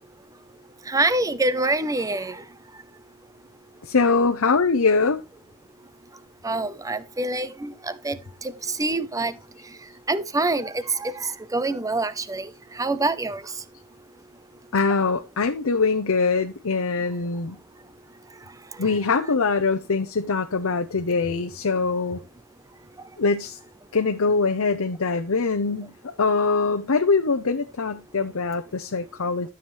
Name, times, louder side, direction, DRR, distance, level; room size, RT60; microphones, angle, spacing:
voice 1, 0.9-2.4 6.4-7.7 8.0-8.2 8.8-9.3 10.1-10.7 11.0-11.1 11.5-12.5 12.8-13.4, right 2 dB, 15° right, 0.7 m, -25 dB
voice 2, 3.8-5.2 14.7-17.6 18.8-22.2 23.2-23.6 23.9-25.9 26.2-29.5, left 4 dB, 80° left, 0.8 m, -23 dB
12.5 x 7.2 x 3.2 m
head